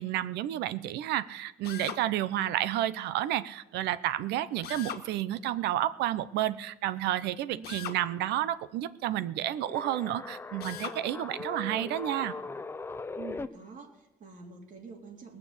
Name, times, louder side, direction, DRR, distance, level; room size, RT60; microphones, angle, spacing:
voice 1, 0.0-12.3, right 13 dB, 85° right, 16 dB, 0.7 m, -31 dB
Drill, 1.6-2.0 4.6-5.1 7.6-8.0 10.6-11.0, left 9 dB, 65° left, 1.4 m, -39 dB
sound 1, 9.6-13.5, left 3 dB, 15° left, 0.5 m, -40 dB
voice 2, 11.3-11.9 13.1-15.4, right 5 dB, 50° right, 3 dB, 2.8 m, -47 dB
19.5 x 6.9 x 8.2 m, 0.94 s
cardioid pair, 110°, 17 cm